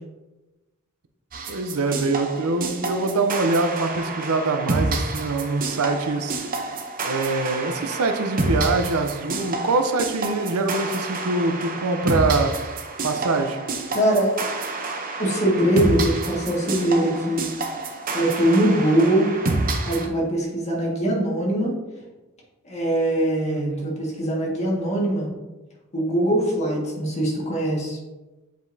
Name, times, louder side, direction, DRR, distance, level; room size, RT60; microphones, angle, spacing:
sound 1, 1.3-20.1, right 2 dB, 40° right, 0.7 m, -28 dB
voice 1, 1.5-6.4 7.0-12.5 13.0-13.6 23.5-23.9, right 3 dB, 90° right, 7 dB, 0.7 m, -24 dB
voice 2, 13.9-14.3 15.2-17.4 18.1-19.3 19.9-21.8 22.6-25.3 25.9-28.0, right 1 dB, 30° left, -3 dB, 1.8 m, -22 dB
7.7 x 5.1 x 2.7 m, 1.1 s
head